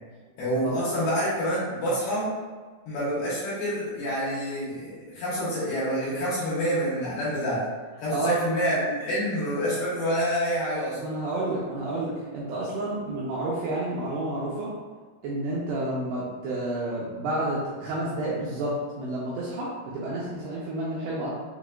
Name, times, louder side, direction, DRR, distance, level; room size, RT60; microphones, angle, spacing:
voice 1, 0.4-2.3 2.9-7.6 8.0-11.0, equal, 65° left, -10 dB, 2.9 m, -27 dB
voice 2, 8.1-8.4 10.9-14.7 15.2-21.3, right 1 dB, 85° right, -6 dB, 2.4 m, -30 dB
6.8 x 3.0 x 2.4 m, 1.4 s
omnidirectional pair, 5.5 m